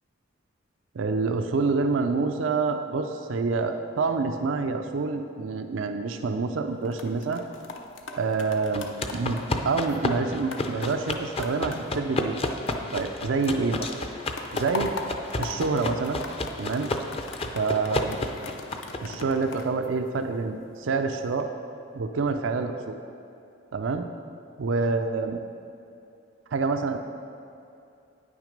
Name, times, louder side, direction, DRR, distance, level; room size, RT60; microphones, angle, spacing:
voice 1, 0.9-7.4 8.1-8.9 9.1-12.4 12.9-14.1 14.5-14.9 15.4-16.2 16.6-16.9 17.5-18.2 19.0-21.5 21.9-23.0 23.7-24.0 24.6-25.4 26.5-27.0, right 4 dB, 90° right, 6 dB, 0.5 m, -27 dB
sound 1, 6.7-13.2 13.4-20.6 21.1-21.4, left 3 dB, 70° left, 0.7 m, -41 dB
sound 2, 8.7-19.2, left 2 dB, 30° left, 0.5 m, -32 dB
9.2 x 6.1 x 5.2 m, 2.6 s
head